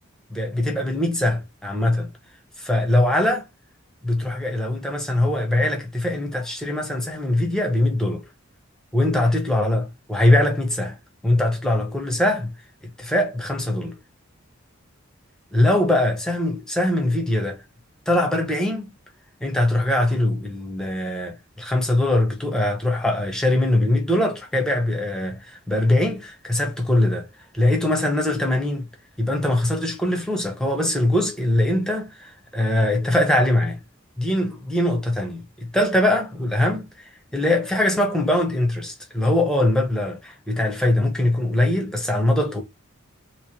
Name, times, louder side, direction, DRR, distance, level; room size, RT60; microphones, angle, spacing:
voice 1, 0.3-2.1 2.6-3.5 4.0-8.2 8.9-11.0 11.2-12.5 13.0-14.0 15.5-17.6 18.1-18.9 19.4-27.3 27.5-28.9 29.2-33.8 34.2-36.9 37.3-42.6, left 1 dB, 5° left, 0.8 m, -22 dB
3.1 x 3.1 x 3.0 m
head